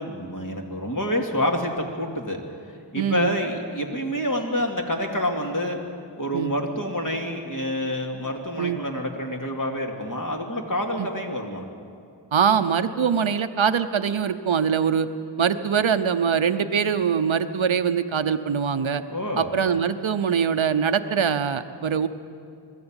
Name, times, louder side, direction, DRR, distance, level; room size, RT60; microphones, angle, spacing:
voice 1, 0.0-2.4 2.9-5.8 6.2-11.6 19.1-19.5, left 1 dB, 40° left, 1 dB, 2.6 m, -27 dB
voice 2, 3.0-3.4 6.3-6.5 8.6-8.8 11.0-11.1 12.3-15.1 15.4-19.0 19.4-22.1, right 7 dB, 85° right, 9 dB, 0.8 m, -23 dB
21.0 x 14.0 x 8.9 m, 2.4 s
wide cardioid pair, 50°, 46 cm